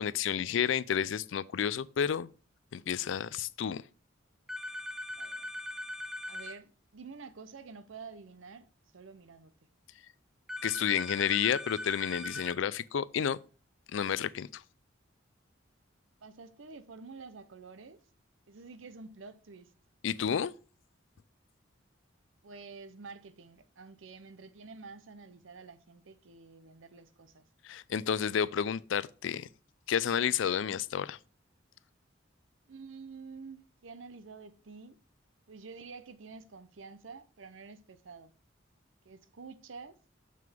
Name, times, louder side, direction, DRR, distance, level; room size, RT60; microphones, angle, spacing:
voice 1, 0.0-2.3 2.7-3.8 10.6-13.4 13.9-14.6 20.0-20.5 27.6-29.5 29.9-31.2, left 8 dB, 70° left, 0.4 m, -31 dB
sound 1, 4.5-6.6 10.5-12.6, left 1 dB, ahead, 0.7 m, -40 dB
voice 2, 5.1-5.5 6.3-8.7 8.9-9.5 16.2-18.0 18.5-19.7 22.4-27.4 32.7-35.0 35.5-38.3 39.0-40.0, right 4 dB, 80° right, 0.7 m, -49 dB
6.9 x 6.4 x 3.5 m
head